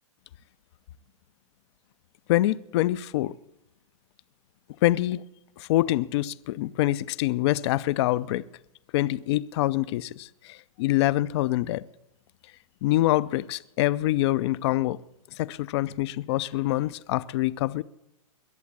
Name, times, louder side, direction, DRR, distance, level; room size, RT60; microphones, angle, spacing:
voice 1, 2.3-3.4 4.8-5.2 5.6-8.5 8.9-11.9 12.8-15.0 15.4-17.8, left 16 dB, 50° left, 0.5 m, -25 dB
21.5 x 7.3 x 8.6 m
hypercardioid pair, 135°, 18 cm